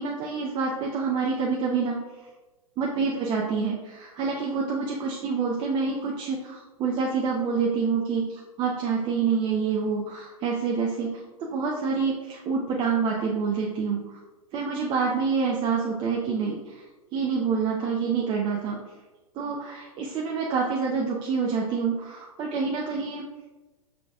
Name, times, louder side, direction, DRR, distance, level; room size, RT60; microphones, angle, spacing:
voice 1, 0.0-2.0 2.8-11.1 11.4-14.2 14.5-16.8 17.1-18.8 19.4-23.2, right 5 dB, 25° right, -1 dB, 0.5 m, -27 dB
5.6 x 3.8 x 2.3 m, 1.2 s
figure-of-eight pair, 105°, 19 cm